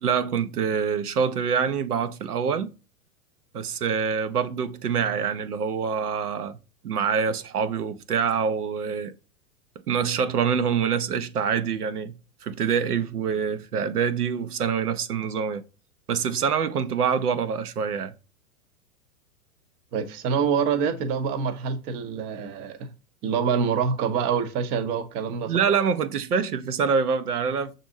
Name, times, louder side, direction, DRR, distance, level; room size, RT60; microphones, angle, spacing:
voice 1, 0.0-2.7 3.5-6.6 6.8-9.1 9.9-15.6 16.1-18.1 25.5-27.8, right 6 dB, 85° right, 0.6 m, -25 dB
voice 2, 19.9-22.8 23.2-25.6, right 6 dB, 25° right, 0.5 m, -26 dB
6.0 x 2.5 x 2.6 m
hypercardioid pair, 110°, 44 cm